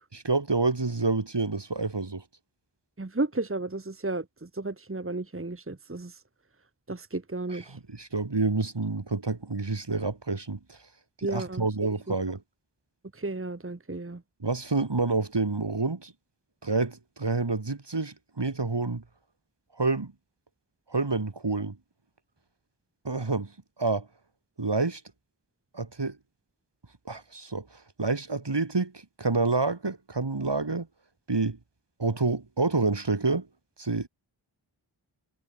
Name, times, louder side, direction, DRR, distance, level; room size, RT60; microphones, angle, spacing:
voice 1, 0.1-2.2 7.5-10.8 11.3-12.4 14.4-16.1 16.6-19.0 19.8-20.1 20.9-21.8 23.0-23.5 23.8-24.1 24.6-25.0 25.7-26.2 27.0-27.7 28.0-28.9 29.2-30.9 31.3-31.6 32.0-33.5 33.8-34.1, right 3 dB, 55° right, 3.3 m, -28 dB
voice 2, 3.0-6.2 6.9-7.8 11.2-11.6 12.1-12.2 13.1-14.2, right 2 dB, 25° right, 1.4 m, -33 dB
wide cardioid pair, 45°, 49 cm